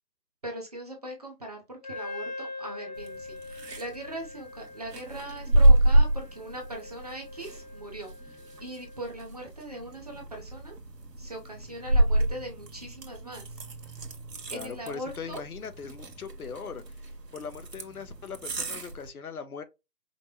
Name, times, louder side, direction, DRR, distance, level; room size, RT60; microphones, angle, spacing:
voice 1, 0.4-10.8 11.2-13.6 13.9-14.0 14.5-15.4, right 1 dB, 25° right, 0.7 m, -40 dB
Wind instrument woodwind instrument, 1.8-9.2, left 3 dB, 25° left, 1.0 m, -43 dB
sound 1, 3.0-19.1, right 1 dB, 90° right, 1.2 m, -28 dB
voice 2, 14.5-19.6, left 6 dB, 65° left, 0.8 m, -40 dB
5.2 x 2.2 x 2.9 m
figure-of-eight pair, 155°, 48 cm